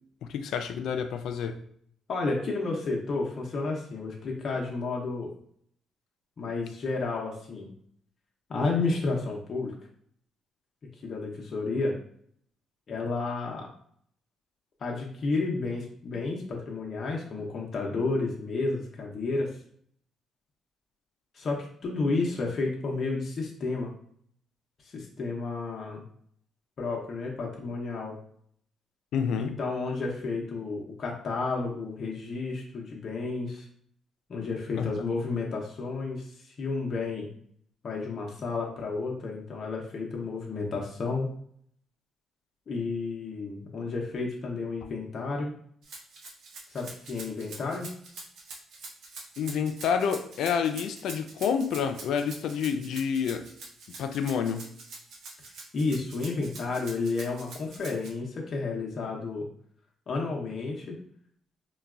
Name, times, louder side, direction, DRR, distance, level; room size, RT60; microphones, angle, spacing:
voice 1, 0.2-1.6 29.1-29.6 34.8-34.9 49.4-53.5 53.9-54.7, left 7 dB, 80° left, 8 dB, 0.3 m, -29 dB
voice 2, 2.1-5.3 6.4-7.7 8.5-9.7 11.0-12.0 12.9-13.7 14.8-19.5 21.3-23.9 24.8-26.0 26.8-28.2 29.4-33.7 34.3-37.3 37.8-41.3 42.7-45.5 46.7-47.9 55.7-59.5 60.1-61.0, left 3 dB, 50° left, -2 dB, 0.7 m, -31 dB
Rattle (instrument), 45.8-58.1, right 3 dB, 75° right, 0.7 m, -45 dB
3.9 x 2.2 x 2.4 m, 0.64 s
cardioid pair, 90°, 0 cm